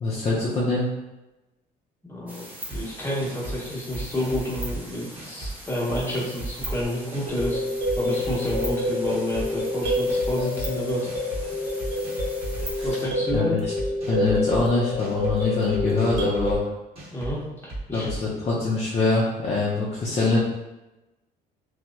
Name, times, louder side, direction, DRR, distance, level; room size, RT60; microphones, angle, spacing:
voice 1, 0.0-0.9 12.8-12.9 13.3-13.6 14.1-16.7 17.9-20.4, left 3 dB, 40° left, -6 dB, 0.5 m, -24 dB
voice 2, 2.1-7.6 8.0-11.1 12.8-13.6 17.1-18.2, left 1 dB, 15° left, -6 dB, 0.9 m, -29 dB
sound 1, 2.3-13.1, equal, 10° right, 0.6 m, -41 dB
sound 2, 2.7-2.8 3.2-3.6 3.9-4.8 5.1-5.5 5.9-6.7 7.1-7.5 7.9-8.7 9.1-9.4 9.8-10.7 11.1-11.4 11.8-12.6 13.0-13.4 13.8-14.6 15.0-15.4 15.7-16.6 17.0-17.3 17.7-18.2, right 2 dB, 35° right, 1.0 m, -35 dB
sound 3, 7.3-16.5, left 1 dB, 65° right, 0.7 m, -28 dB
2.8 x 2.0 x 2.2 m, 1.0 s
cardioid pair, 110°, 17 cm